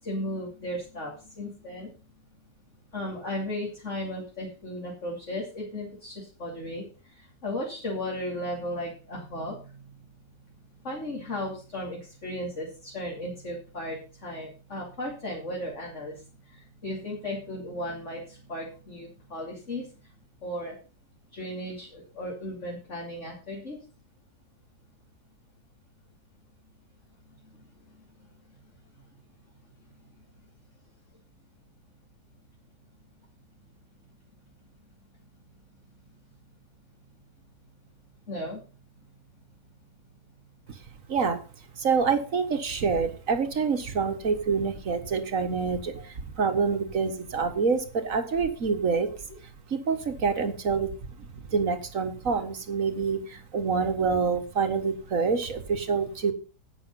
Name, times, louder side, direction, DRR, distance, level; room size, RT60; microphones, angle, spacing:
voice 1, 0.0-1.9 2.9-9.9 10.8-19.9 20.4-20.7 21.3-23.8 27.3-27.7 38.3-38.6 46.0-46.1, left 1 dB, 40° left, -3 dB, 3.2 m, -35 dB
voice 2, 40.7-49.1 49.4-56.3, right 5 dB, 50° right, 7 dB, 1.9 m, -27 dB
11.5 x 8.7 x 5.6 m, 0.36 s
omnidirectional pair, 1.9 m